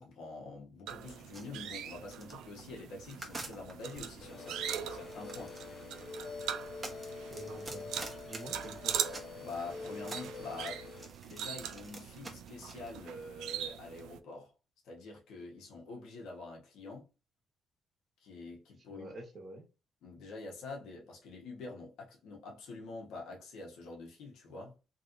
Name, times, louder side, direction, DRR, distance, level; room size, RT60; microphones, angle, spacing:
voice 1, 0.0-5.6 9.4-10.8 11.2-14.5 14.8-17.1 18.2-19.1 20.0-24.7, left 3 dB, 85° left, 1.2 m, -46 dB
sound 1, 0.9-14.2, right 10 dB, 85° right, 0.3 m, -42 dB
sound 2, 1.3-4.0 4.9-9.5 9.8-12.9, right 2 dB, 30° right, 1.1 m, -47 dB
sound 3, 4.2-11.1, left 4 dB, 50° left, 0.7 m, -46 dB
voice 2, 7.3-8.9 18.9-19.6, right 2 dB, 50° right, 1.4 m, -48 dB
3.2 x 3.0 x 2.6 m
cardioid pair, 90°, 0 cm